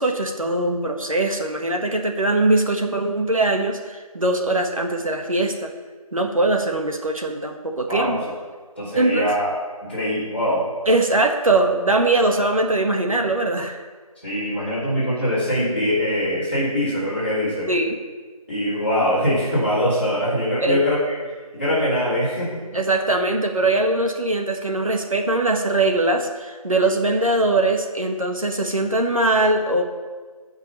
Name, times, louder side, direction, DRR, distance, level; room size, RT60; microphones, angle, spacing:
voice 1, 0.0-5.7 6.1-8.2 8.9-9.3 10.9-13.8 17.7-18.0 20.6-20.8 22.7-29.8, right 2 dB, 65° right, 3 dB, 1.5 m, -21 dB
voice 2, 8.8-9.5 9.8-10.6 14.2-17.7 18.5-21.0 21.5-22.6, equal, 15° left, -10 dB, 2.8 m, -22 dB
14.0 x 5.7 x 7.3 m, 1.5 s
figure-of-eight pair, 180°, 19 cm